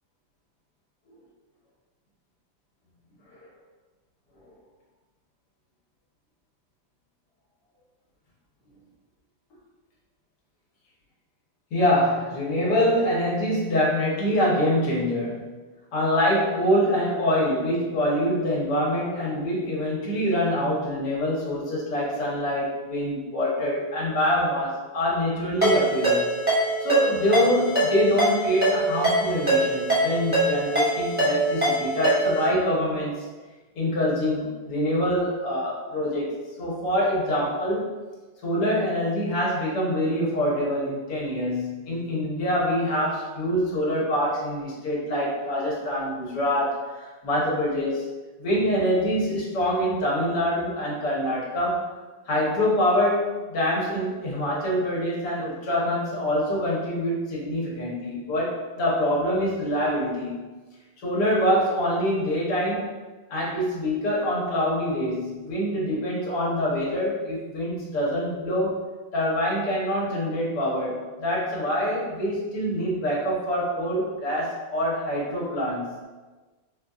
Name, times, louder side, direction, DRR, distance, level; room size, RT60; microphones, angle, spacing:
voice 1, 11.7-15.4 15.9-26.3 26.8-33.1 33.7-37.9 38.4-48.0 48.4-51.8 52.3-60.5 61.0-62.9 63.3-68.8 69.1-75.9, equal, 60° left, -5 dB, 1.6 m, -25 dB
Ringtone, 25.6-32.5, right 1 dB, 5° right, 1.0 m, -23 dB
5.1 x 2.6 x 2.3 m, 1.3 s
omnidirectional pair, 2.0 m